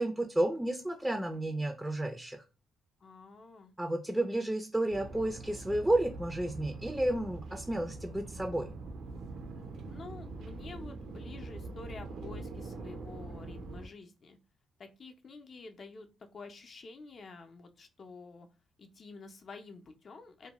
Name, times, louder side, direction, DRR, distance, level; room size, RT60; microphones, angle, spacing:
voice 1, 0.0-2.4 3.8-8.7, right 1 dB, 10° right, 5 dB, 0.4 m, -31 dB
voice 2, 3.0-3.7 9.9-14.4 14.8-16.1 16.3-18.5 18.8-20.5, left 4 dB, 50° left, 6 dB, 0.5 m, -49 dB
sound 1, 4.9-13.9, right 3 dB, 80° right, 0.5 m, -43 dB
2.6 x 2.2 x 2.9 m, 0.31 s
supercardioid pair, 65°, 0 cm